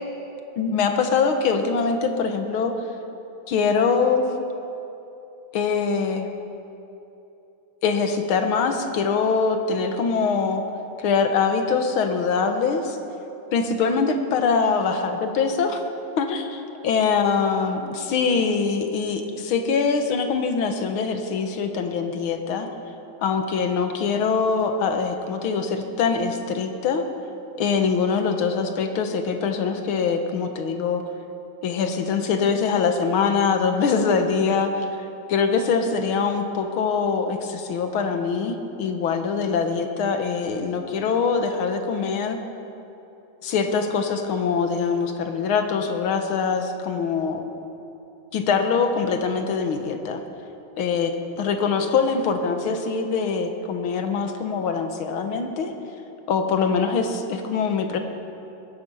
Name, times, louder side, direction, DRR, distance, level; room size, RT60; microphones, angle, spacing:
voice 1, 0.6-2.7 3.5-4.2 5.5-6.3 7.8-10.6 11.0-13.0 13.5-15.8 16.2-22.7 23.2-27.0 27.6-31.0 31.6-34.9 35.3-42.4 43.4-47.4 48.3-50.2 50.8-55.7 56.3-58.0, left 5 dB, 80° left, 6 dB, 1.9 m, -23 dB
20.5 x 10.5 x 5.5 m, 2.9 s
omnidirectional pair, 2.2 m